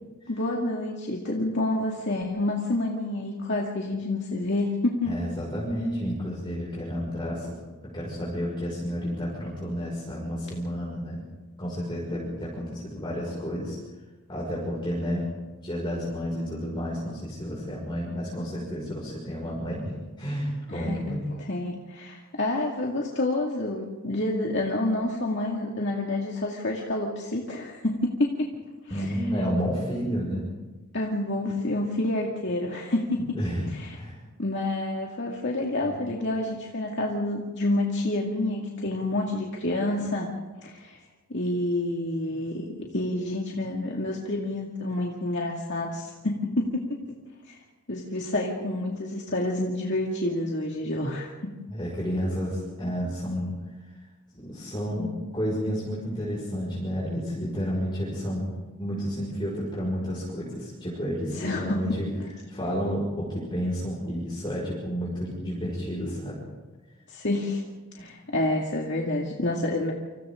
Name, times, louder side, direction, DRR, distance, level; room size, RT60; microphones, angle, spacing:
voice 1, 0.3-5.2 20.7-21.0 21.5-28.5 28.8-29.2 30.9-33.2 33.7-34.0 34.4-40.3 40.6-41.0 41.3-47.0 47.5-47.6 47.9-51.3 61.3-61.8 67.1-67.6 67.9-69.9, left 2 dB, 55° left, -2 dB, 2.3 m, -28 dB
voice 2, 5.0-7.6 7.8-11.3 11.6-13.8 14.3-15.3 15.6-21.2 28.9-30.5 33.3-33.7 33.9-34.2 35.8-36.0 51.7-53.6 54.3-58.5 58.8-62.1 62.5-66.4 68.0-68.1, equal, 20° left, -5 dB, 5.9 m, -31 dB
29.5 x 27.0 x 3.8 m, 1.2 s
head